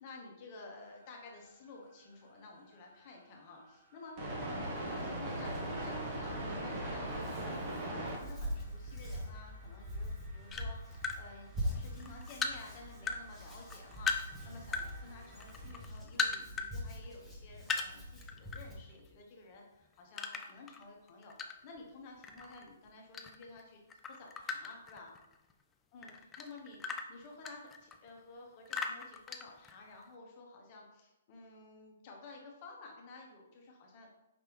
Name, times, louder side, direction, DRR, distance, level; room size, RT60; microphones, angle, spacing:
voice 1, 0.0-7.4 7.9-23.8 24.1-25.1 25.9-34.1, left 3 dB, 40° left, 0 dB, 1.1 m, -53 dB
sound 1, 2.9-3.0 3.9-8.2 8.6-8.7 9.0-15.8, right 1 dB, 35° right, 1.3 m, -41 dB
Hands, 4.7-18.7, equal, ahead, 1.1 m, -44 dB
sound 2, 10.5-11.2 11.7-13.2 13.5-14.9 15.2-16.7 17.0-17.1 17.6-18.6 18.9-19.2 20.2-21.8 22.2-23.6 23.9-25.5 26.0-28.1 28.7-30.0, left 5 dB, 15° left, 0.4 m, -38 dB
5.1 x 3.3 x 3.0 m, 0.94 s
hypercardioid pair, 130°, 0 cm